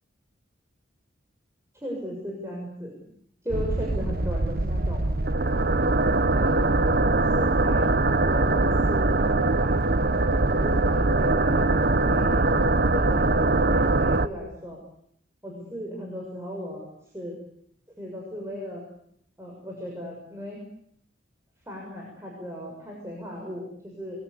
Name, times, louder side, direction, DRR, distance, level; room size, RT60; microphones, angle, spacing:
voice 1, 1.7-2.9 3.4-5.0 6.3-6.8 7.2-7.9 8.3-9.7 10.5-12.4 12.9-14.8 15.4-16.8 17.1-17.3 18.0-18.8 19.4-20.6 21.7-24.2, equal, 15° right, -2 dB, 7.0 m, -36 dB
sound 1, 3.5-14.3, right 2 dB, 50° right, 1.0 m, -22 dB
28.5 x 22.0 x 8.6 m, 0.70 s
head